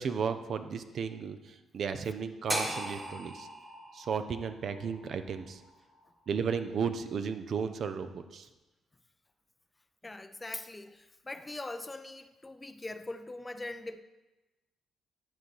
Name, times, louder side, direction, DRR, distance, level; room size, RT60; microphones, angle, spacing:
voice 1, 0.0-3.5 3.9-5.6 6.3-8.5, right 6 dB, 60° right, 10 dB, 0.6 m, -34 dB
sound 1, 2.5-6.6, right 1 dB, 15° right, 1.4 m, -39 dB
voice 2, 10.0-14.0, left 2 dB, 20° left, 10 dB, 0.5 m, -42 dB
10.5 x 4.0 x 6.5 m, 1.1 s
cardioid pair, 90°, 0 cm